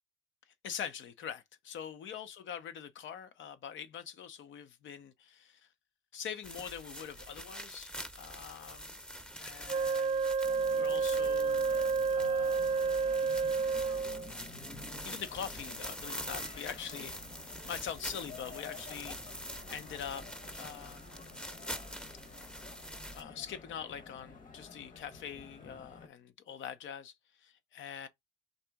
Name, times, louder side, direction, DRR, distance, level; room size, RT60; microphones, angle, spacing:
voice 1, 0.6-5.7 6.1-8.9 9.4-10.3 10.7-11.7 12.1-12.8 15.0-20.2 20.6-21.4 23.1-28.1, left 8 dB, 75° left, 0.8 m, -44 dB
sound 1, 6.4-23.2, equal, 5° left, 0.7 m, -45 dB
Wind instrument woodwind instrument, 9.7-14.3, right 5 dB, 30° right, 0.4 m, -30 dB
sound 2, 10.4-26.1, left 4 dB, 45° left, 1.1 m, -51 dB
4.0 x 2.9 x 3.5 m
cardioid pair, 90°, 20 cm